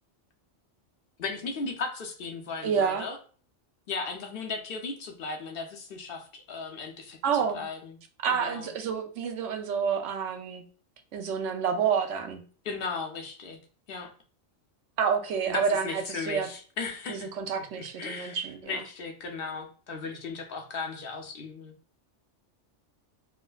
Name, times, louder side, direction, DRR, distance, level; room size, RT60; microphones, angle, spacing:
voice 1, 1.2-3.2 3.9-8.0 8.3-8.7 12.6-13.6 13.9-14.1 15.5-17.3 17.6-17.7 18.0-21.7, left 4 dB, 55° left, 3 dB, 0.8 m, -36 dB
voice 2, 2.6-3.1 7.2-7.6 8.2-10.6 11.1-12.4 15.0-16.5 17.1-18.8, right 6 dB, 80° right, 6 dB, 0.9 m, -29 dB
4.8 x 2.1 x 2.3 m, 0.41 s
omnidirectional pair, 1.2 m